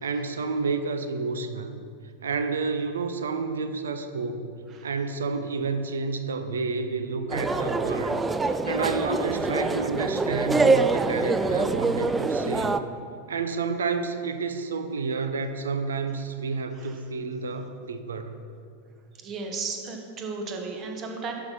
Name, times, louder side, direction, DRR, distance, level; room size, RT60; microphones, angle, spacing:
voice 1, 0.0-1.8 2.2-4.5 4.8-8.2 8.7-12.8 13.3-18.4, right 4 dB, 65° right, 9 dB, 0.6 m, -30 dB
sound 1, 7.3-12.8, right 3 dB, 10° right, 0.3 m, -25 dB
voice 2, 19.2-21.3, right 4 dB, 30° right, 2 dB, 1.3 m, -34 dB
11.0 x 5.8 x 4.2 m, 2.4 s
figure-of-eight pair, 90°, 0 cm